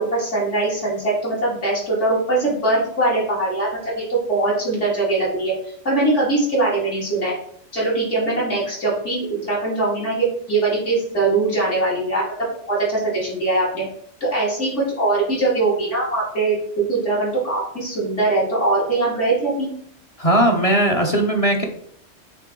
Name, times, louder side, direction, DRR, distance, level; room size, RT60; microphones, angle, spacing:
voice 1, 0.0-7.3 7.7-12.3 12.7-13.8 14.2-19.7, right 2 dB, 70° left, -6 dB, 3.0 m, -21 dB
voice 2, 20.2-21.6, right 1 dB, 35° left, 2 dB, 0.7 m, -18 dB
8.0 x 3.3 x 3.7 m, 0.65 s
omnidirectional pair, 1.3 m